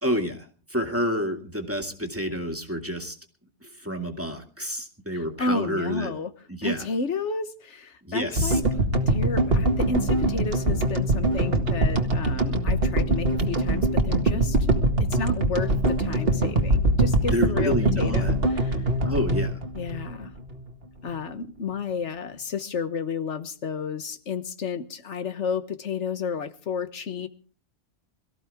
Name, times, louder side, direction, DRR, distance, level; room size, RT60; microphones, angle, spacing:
voice 1, 0.0-3.2 3.6-6.1 6.5-6.9 8.0-8.6 17.3-18.4 19.0-19.5, equal, 10° right, 3 dB, 2.3 m, -29 dB
voice 2, 5.1-6.3 6.6-8.6 9.1-14.6 15.0-18.8 19.7-20.3 21.0-27.3, left 4 dB, 80° left, 10 dB, 1.5 m, -31 dB
sound 1, 8.4-20.7, right 1 dB, 55° right, 2.1 m, -23 dB
23.0 x 14.5 x 3.6 m, 0.39 s
omnidirectional pair, 1.2 m